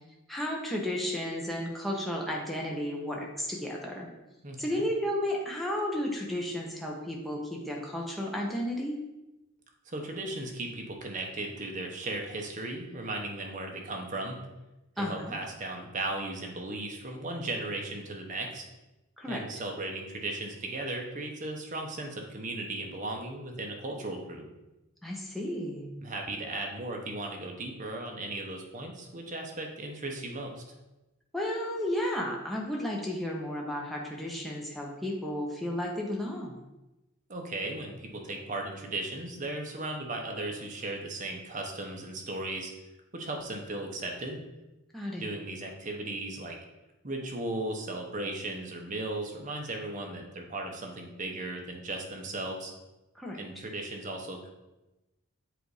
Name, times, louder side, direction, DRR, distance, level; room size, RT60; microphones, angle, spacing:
voice 1, 0.3-4.1 4.6-9.0 15.0-15.3 19.2-19.4 25.0-25.9 31.3-36.6 44.9-45.3 53.1-53.4, left 1 dB, ahead, -2 dB, 0.7 m, -33 dB
voice 2, 4.4-4.8 9.9-14.4 15.0-18.6 19.3-24.5 26.0-30.6 37.3-42.7 43.1-44.4 45.2-46.6 47.0-52.7 53.4-54.5, right 2 dB, 35° right, 2 dB, 0.8 m, -36 dB
7.8 x 2.6 x 4.7 m, 1.0 s
head